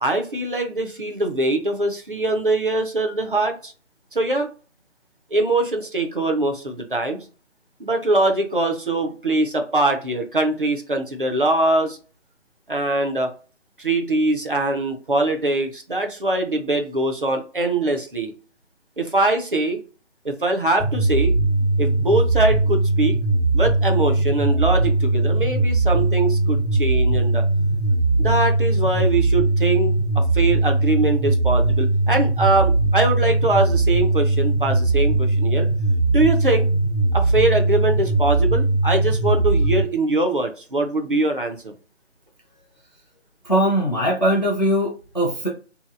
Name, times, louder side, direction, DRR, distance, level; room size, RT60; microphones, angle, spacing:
voice 1, 0.0-3.7 4.1-4.5 5.3-7.2 7.8-12.0 12.7-13.3 13.8-18.3 19.0-19.8 20.2-21.3 21.8-23.2 23.5-27.4 28.2-29.9 30.3-35.7 36.1-36.7 37.1-41.7, right 2 dB, 45° right, 4 dB, 0.4 m, -22 dB
sound 1, 20.8-39.8, right 2 dB, 60° left, 0.8 m, -20 dB
voice 2, 43.5-45.5, equal, 40° left, -2 dB, 0.5 m, -20 dB
2.7 x 2.1 x 2.4 m, 0.36 s
figure-of-eight pair, 180°, 36 cm